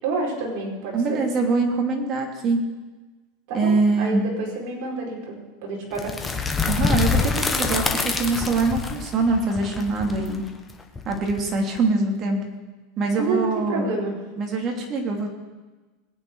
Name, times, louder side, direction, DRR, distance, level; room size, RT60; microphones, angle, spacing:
voice 1, 0.0-1.2 3.6-6.1 13.2-14.1, right 3 dB, 55° right, -3 dB, 4.8 m, -28 dB
voice 2, 0.9-2.6 3.5-4.2 6.6-10.4 11.0-12.4 13.0-13.9 14.4-15.3, right 3 dB, 30° right, 2 dB, 2.7 m, -23 dB
sound 1, 6.0-11.8, left 4 dB, 15° left, 1.3 m, -26 dB
21.0 x 9.0 x 4.7 m, 1.2 s
supercardioid pair, 145°, 0 cm